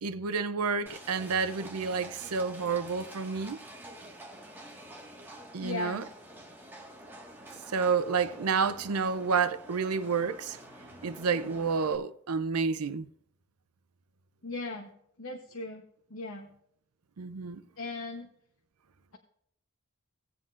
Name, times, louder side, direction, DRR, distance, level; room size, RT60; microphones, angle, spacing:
voice 1, 0.0-3.6 5.5-6.0 7.7-10.6 11.0-13.1 17.2-17.6, right 5 dB, 90° right, 0.6 m, -29 dB
Livestock farm animals working animals, 0.9-12.0, right 1 dB, 10° right, 1.7 m, -48 dB
voice 2, 5.6-6.0 14.4-14.9 15.2-15.8 16.1-16.5 17.8-18.3, left 3 dB, 65° left, 1.0 m, -37 dB
18.5 x 7.7 x 2.5 m
head